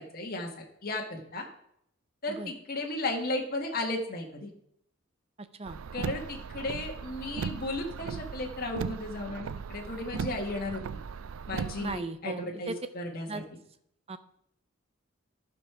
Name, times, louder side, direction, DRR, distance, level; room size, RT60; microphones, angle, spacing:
voice 1, 0.0-1.4 2.2-4.5 5.9-11.0 11.5-13.4, left 2 dB, 45° left, 1 dB, 1.6 m, -35 dB
voice 2, 5.4-5.8 11.8-12.8 13.3-13.4 14.1-14.2, right 2 dB, 30° right, 11 dB, 0.6 m, -37 dB
Car, 5.7-12.0, right 5 dB, 75° right, 0.4 m, -38 dB
11.0 x 5.3 x 6.0 m, 0.71 s
head